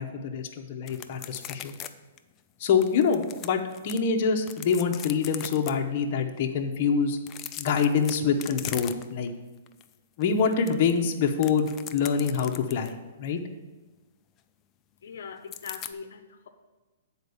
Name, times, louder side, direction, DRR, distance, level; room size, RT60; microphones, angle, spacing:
voice 1, 0.0-1.7 2.6-7.2 7.6-9.3 10.2-13.4, left 6 dB, 40° left, 2 dB, 0.8 m, -26 dB
sound 1, 0.9-1.9 2.2-2.3 2.8-4.0 4.4-5.7 7.2-9.3 9.7-9.9 10.2-13.0 15.5-15.9, left 11 dB, 20° left, 0.4 m, -40 dB
voice 2, 15.0-16.5, left 6 dB, 75° left, 7 dB, 0.7 m, -41 dB
8.1 x 4.3 x 6.9 m, 1.2 s
hypercardioid pair, 160°, 0 cm